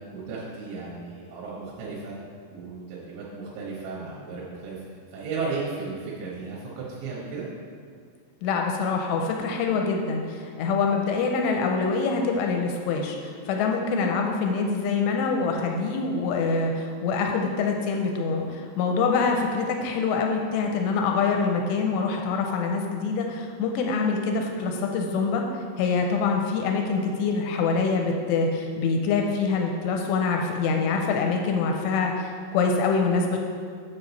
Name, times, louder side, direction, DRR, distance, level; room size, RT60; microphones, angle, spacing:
voice 1, 0.1-2.2 2.5-4.8 5.1-7.5, right 4 dB, 85° right, -6 dB, 3.5 m, -34 dB
voice 2, 8.4-25.4 25.8-33.4, left 4 dB, 85° left, 2 dB, 2.8 m, -25 dB
7.6 x 7.0 x 4.1 m, 2.1 s
omnidirectional pair, 5.0 m